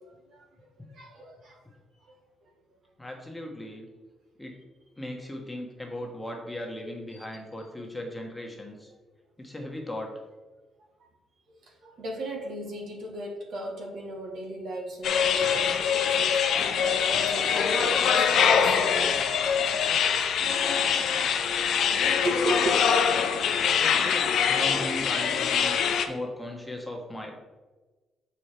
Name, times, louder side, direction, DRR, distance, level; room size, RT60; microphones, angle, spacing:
voice 1, 0.3-1.6 11.8-19.9 22.2-22.8 23.7-23.9, right 1 dB, 70° right, 0 dB, 1.6 m, -36 dB
voice 2, 3.0-3.9 4.4-4.6 5.0-8.9 9.4-10.1 23.8-25.8 26.1-27.4, left 1 dB, 10° left, 1 dB, 1.4 m, -37 dB
sound 1, 15.0-26.1, left 7 dB, 70° left, 0.6 m, -24 dB
6.3 x 4.9 x 4.5 m, 1.2 s
cardioid pair, 90°, 0 cm